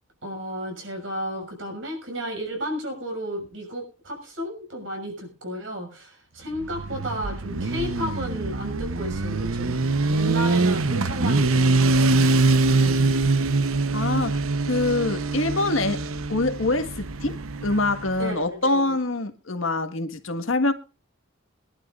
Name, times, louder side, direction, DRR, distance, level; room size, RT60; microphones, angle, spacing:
voice 1, 0.2-13.2 18.2-18.9, equal, 65° right, 6.5 m, -33 dB
Motorcycle, 6.5-18.2, right 3 dB, 85° right, 0.9 m, -23 dB
voice 2, 13.9-14.4 14.7-17.4 17.6-20.7, left 2 dB, 70° left, 1.7 m, -25 dB
24.0 x 11.5 x 2.5 m
head